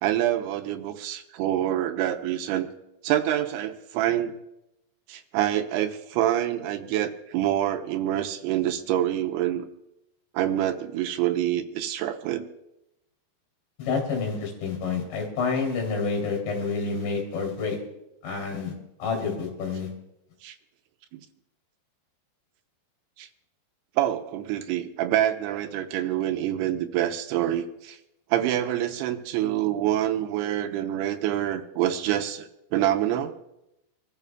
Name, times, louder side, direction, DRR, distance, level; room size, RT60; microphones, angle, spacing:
voice 1, 0.0-2.7 3.0-4.4 5.1-9.7 10.3-12.5 20.4-20.6 21.1-21.2 23.2-23.3 24.0-28.0 28.3-33.3, right 12 dB, 80° right, 6 dB, 2.7 m, -26 dB
voice 2, 13.8-17.8 18.2-18.7 19.0-19.9, left 4 dB, 90° left, 1 dB, 5.4 m, -28 dB
26.0 x 14.0 x 2.3 m, 0.88 s
omnidirectional pair, 4.9 m